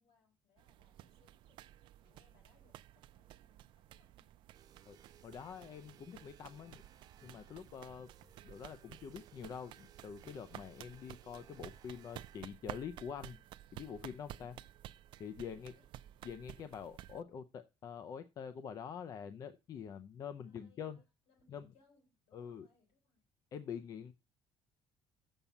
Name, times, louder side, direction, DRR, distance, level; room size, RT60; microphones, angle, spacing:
voice 1, 0.0-1.7 2.0-4.4 14.3-14.7 15.3-15.9 20.4-23.3, left 4 dB, 65° left, 3 dB, 5.3 m, -72 dB
sound 1, 0.6-17.2, right 13 dB, 55° right, 0.4 m, -53 dB
sound 2, 4.5-12.4, right 8 dB, 40° right, 1.2 m, -64 dB
voice 2, 4.9-6.8 7.2-8.1 8.4-13.4 13.7-14.5 15.2-15.7 16.2-21.0 21.5-21.7 22.3-22.7 23.5-24.1, left 7 dB, 35° left, 11 dB, 0.5 m, -46 dB
7.2 x 5.4 x 7.1 m, 0.27 s
cardioid pair, 175°, 10 cm